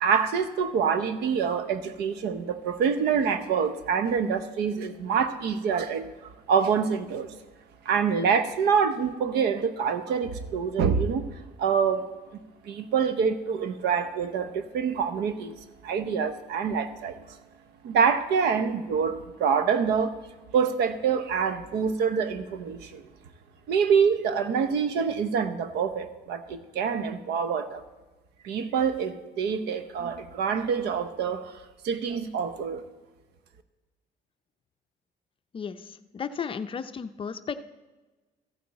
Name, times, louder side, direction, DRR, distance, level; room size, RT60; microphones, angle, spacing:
voice 1, 0.0-6.1 6.5-7.3 7.8-11.2 11.6-12.1 12.3-15.5 15.8-17.2 17.8-20.1 20.5-23.0 23.7-27.8 28.4-32.8, right 6 dB, 80° right, 11 dB, 0.9 m, -26 dB
voice 2, 35.5-37.6, left 6 dB, 30° left, 11 dB, 0.5 m, -34 dB
14.0 x 8.8 x 4.2 m, 1.2 s
cardioid pair, 110°, 17 cm